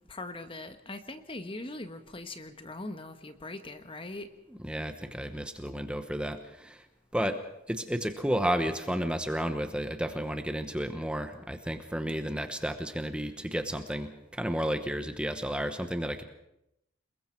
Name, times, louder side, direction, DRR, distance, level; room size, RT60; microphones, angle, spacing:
voice 1, 0.1-4.3, left 2 dB, 25° left, 8 dB, 1.3 m, -41 dB
voice 2, 4.6-6.9 7.1-7.4 7.7-16.2, equal, 5° right, 7 dB, 1.0 m, -32 dB
29.0 x 21.0 x 4.6 m, 0.81 s
head